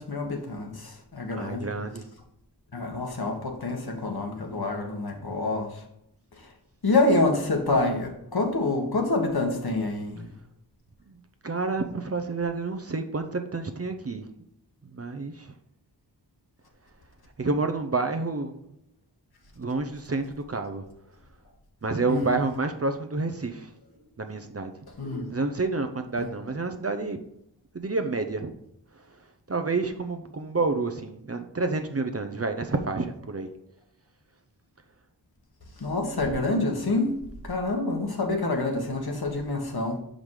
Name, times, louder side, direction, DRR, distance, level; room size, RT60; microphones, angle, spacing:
voice 1, 0.0-1.7 2.7-5.8 6.4-6.5 6.8-10.3 22.0-22.3 25.0-25.3 26.2-26.3 35.8-40.0, left 2 dB, 60° left, 2 dB, 1.4 m, -27 dB
voice 2, 1.4-2.0 11.1-11.2 11.4-14.3 14.8-15.5 17.4-18.6 19.6-20.8 21.8-23.7 24.2-24.7 25.3-27.2 27.7-28.5 29.5-33.5, right 3 dB, 35° right, 7 dB, 0.7 m, -29 dB
5.8 x 5.1 x 4.8 m, 0.76 s
wide cardioid pair, 60°, 42 cm